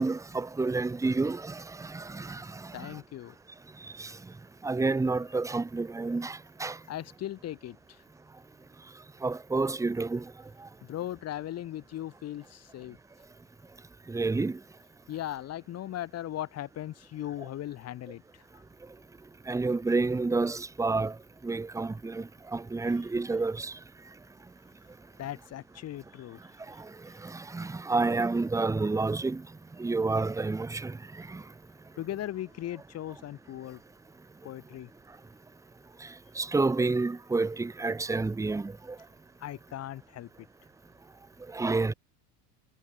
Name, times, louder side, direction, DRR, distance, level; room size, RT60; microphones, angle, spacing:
voice 1, 0.0-3.0 4.0-4.2 4.6-6.8 9.2-10.3 14.1-14.6 19.5-21.1 21.4-23.8 26.7-26.9 27.2-29.5 29.8-31.4 36.0-36.1 36.3-39.0 41.5-41.9, right 3 dB, 5° right, 1.4 m, -29 dB
voice 2, 2.7-3.3 6.9-8.0 10.8-13.0 15.1-18.6 25.2-26.4 32.0-33.8 34.4-34.9 39.4-40.5, left 12 dB, 30° left, 2.6 m, -38 dB
cardioid pair, 165°, 48 cm